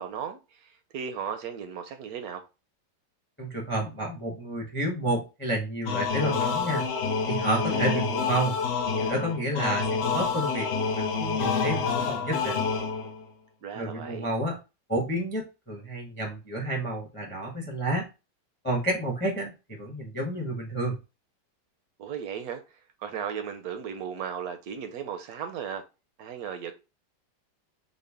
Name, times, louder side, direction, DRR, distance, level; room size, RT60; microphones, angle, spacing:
voice 1, 0.0-2.4 13.6-14.3 22.0-22.6 23.0-25.8 26.2-26.7, right 7 dB, 70° right, 0.9 m, -36 dB
voice 2, 3.4-6.8 7.3-8.5 9.0-10.7 10.9-12.7 13.8-14.6 14.9-18.1 18.6-21.0, right 1 dB, 10° left, 0.5 m, -30 dB
sound 1, 5.9-13.2, left 5 dB, 85° left, 0.6 m, -28 dB
3.8 x 2.1 x 3.4 m
omnidirectional pair, 2.0 m